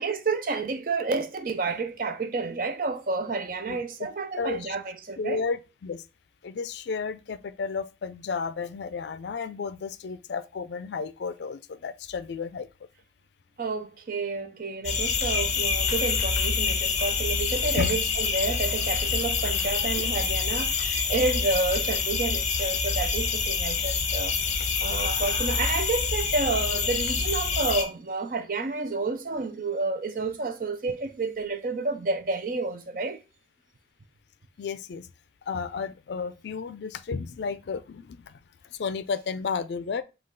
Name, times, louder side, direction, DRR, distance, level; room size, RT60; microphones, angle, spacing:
voice 1, 0.0-5.4 13.6-33.2, right 3 dB, 50° right, 0.5 m, -30 dB
voice 2, 4.4-4.8 5.2-6.1 6.4-12.7 17.8-18.0 34.6-35.1 35.5-38.4 38.6-40.0, left 5 dB, 70° left, 0.4 m, -32 dB
sound 1, 14.8-27.8, left 5 dB, 40° left, 0.7 m, -26 dB
5.3 x 2.3 x 3.7 m
head